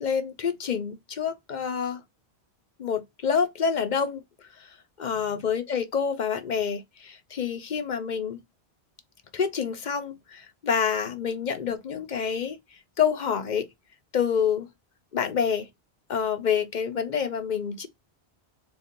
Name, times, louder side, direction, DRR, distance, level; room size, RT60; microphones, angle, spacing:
voice 1, 0.0-2.0 2.8-4.2 5.0-8.4 9.3-12.6 13.0-13.7 14.1-14.7 15.1-15.7 16.1-17.9, left 7 dB, 50° left, 0.7 m, -27 dB
4.1 x 2.3 x 3.6 m
omnidirectional pair, 1.1 m